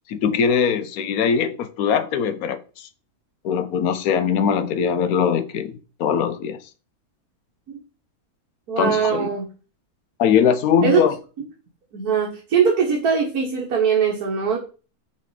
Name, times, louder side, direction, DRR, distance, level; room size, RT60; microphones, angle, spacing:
voice 1, 0.1-2.9 3.4-6.6 8.8-9.3 10.2-11.2, left 7 dB, 75° left, 1.1 m, -21 dB
voice 2, 8.7-9.5 10.8-11.0 11.9-14.6, right 7 dB, 80° right, 1.7 m, -21 dB
5.6 x 4.2 x 4.7 m
omnidirectional pair, 1.6 m